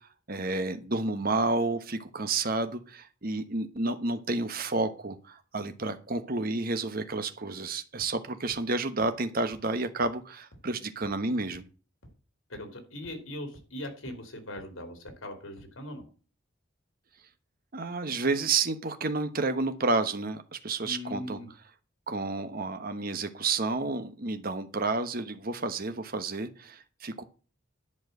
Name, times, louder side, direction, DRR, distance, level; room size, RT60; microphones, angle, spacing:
voice 1, 0.3-11.6 17.7-21.4 22.1-27.2, right 3 dB, 45° right, 9 dB, 1.1 m, -30 dB
sound 1, 8.0-8.1 8.5-8.6 9.0-9.1 9.5-9.6 10.0-10.1 10.5-10.6 11.0-11.1 11.5-11.6 12.0-12.1 12.5-12.6 13.0-13.1 13.5-13.6 14.1-14.2 14.6-14.7 15.1-15.2 15.6-15.7, equal, 70° left, 3.7 m, -52 dB
voice 2, 12.5-16.0 20.8-21.5, left 1 dB, 85° left, 6 dB, 3.0 m, -40 dB
11.0 x 4.8 x 7.8 m, 0.36 s
head